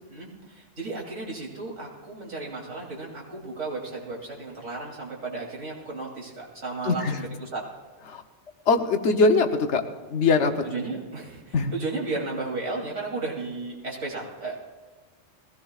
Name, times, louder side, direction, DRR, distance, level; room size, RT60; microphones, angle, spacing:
voice 1, 0.1-7.7 10.6-14.6, right 3 dB, 85° right, -3 dB, 3.5 m, -34 dB
voice 2, 6.8-7.3 8.1-8.2 8.7-10.6 11.5-11.7, left 3 dB, 75° left, 7 dB, 1.2 m, -22 dB
20.5 x 17.0 x 2.4 m, 1.3 s
omnidirectional pair, 1.2 m